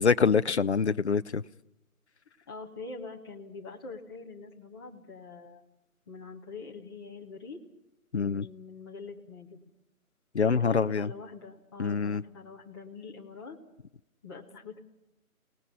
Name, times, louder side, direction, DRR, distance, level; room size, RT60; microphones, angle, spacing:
voice 1, 0.0-1.4 8.1-8.5 10.3-11.1 11.8-12.2, left 5 dB, 50° left, 0.7 m, -25 dB
voice 2, 2.5-5.6 6.1-7.6 8.2-9.6 10.4-13.6 14.2-14.8, left 4 dB, 15° left, 1.6 m, -44 dB
30.0 x 19.0 x 5.6 m
figure-of-eight pair, 170°, 44 cm